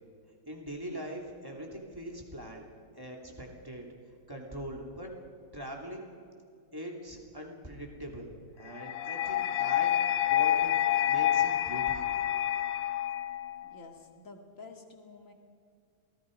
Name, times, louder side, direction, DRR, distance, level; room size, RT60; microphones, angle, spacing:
voice 1, 0.4-2.7 2.9-3.9 4.3-5.1 5.5-6.1 6.7-8.3 8.6-9.9 10.2-10.7 11.1-12.1, equal, 10° right, 0 dB, 2.9 m, -42 dB
sound 1, 8.8-13.8, left 12 dB, 75° left, 1.3 m, -28 dB
voice 2, 13.6-15.3, left 3 dB, 45° left, 3 dB, 2.5 m, -50 dB
27.5 x 18.5 x 5.3 m, 2.3 s
omnidirectional pair, 2.0 m